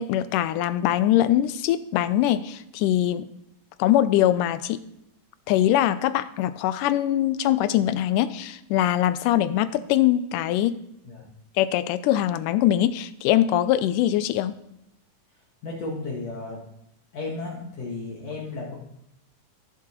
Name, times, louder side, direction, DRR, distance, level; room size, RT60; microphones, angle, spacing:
voice 1, 0.0-3.3 3.8-4.8 5.5-10.8 11.6-14.5, left 12 dB, 80° left, 13 dB, 1.9 m, -22 dB
voice 2, 15.6-16.6 17.1-18.7, left 3 dB, 55° left, -4 dB, 2.4 m, -34 dB
18.0 x 7.5 x 3.0 m, 0.81 s
omnidirectional pair, 4.1 m